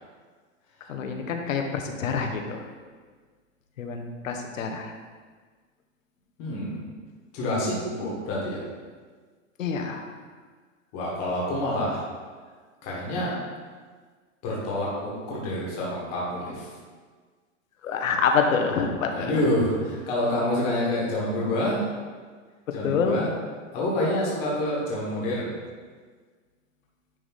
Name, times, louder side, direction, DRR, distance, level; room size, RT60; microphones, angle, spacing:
voice 1, 0.9-2.6 3.8-4.9 9.6-10.0 17.8-19.3 22.8-23.2, left 5 dB, 80° left, 4 dB, 1.1 m, -26 dB
voice 2, 6.4-6.8 7.3-8.6 10.9-12.0 12.8-13.3 14.4-16.7 19.0-21.8 22.7-23.3 23.7-25.5, left 1 dB, 25° left, -5 dB, 1.4 m, -27 dB
9.5 x 3.7 x 4.1 m, 1.5 s
supercardioid pair, 175°, 39 cm